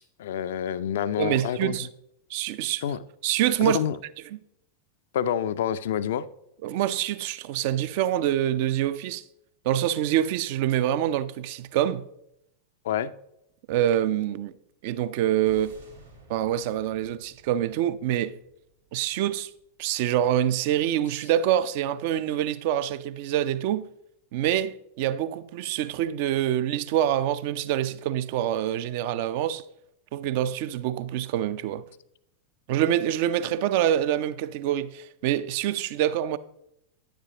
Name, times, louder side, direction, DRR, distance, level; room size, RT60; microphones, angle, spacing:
voice 1, 0.2-1.8 2.8-3.0 3.6-4.0 5.1-6.2 12.8-13.1, left 9 dB, 55° left, 0.4 m, -27 dB
voice 2, 1.2-1.9 2.3-2.8 3.2-3.8 4.3-4.4 6.6-9.2 9.6-12.0 13.7-14.5 14.8-15.7 16.3-18.3 18.9-19.5 19.8-23.9 24.3-29.6 30.1-31.8 32.7-36.4, right 11 dB, 50° right, 0.5 m, -26 dB
sound 1, 15.5-19.9, right 3 dB, 80° right, 2.1 m, -54 dB
10.5 x 9.9 x 2.9 m
figure-of-eight pair, 90°, 0 cm